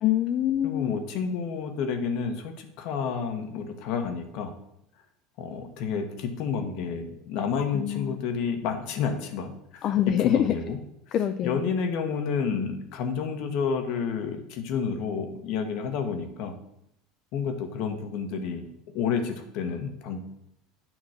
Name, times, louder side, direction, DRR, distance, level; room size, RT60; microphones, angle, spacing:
voice 1, 0.0-0.9 7.6-8.2 9.8-10.6 11.1-11.6, left 11 dB, 45° left, 9 dB, 0.4 m, -25 dB
voice 2, 0.6-4.5 5.4-9.9 10.2-10.8 11.4-16.5 17.3-18.7 18.9-20.2, left 6 dB, 65° left, 6 dB, 1.2 m, -30 dB
9.0 x 3.0 x 6.4 m, 0.78 s
supercardioid pair, 105°, 0 cm